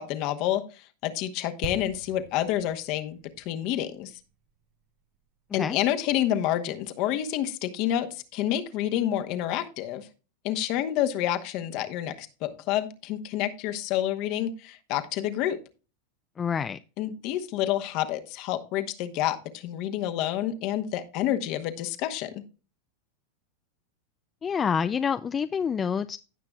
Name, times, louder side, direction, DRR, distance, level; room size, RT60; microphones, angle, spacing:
voice 1, 0.0-3.2 3.4-4.2 5.5-10.1 10.4-15.6 17.0-22.4, left 12 dB, 55° left, 8 dB, 1.0 m, -28 dB
sound 1, 1.6-5.3 5.5-5.7, right 6 dB, 50° right, 0.8 m, -44 dB
voice 2, 16.4-16.8 24.4-26.2, left 7 dB, 25° left, 11 dB, 0.3 m, -27 dB
16.5 x 5.8 x 2.3 m, 0.34 s
hypercardioid pair, 115°, 0 cm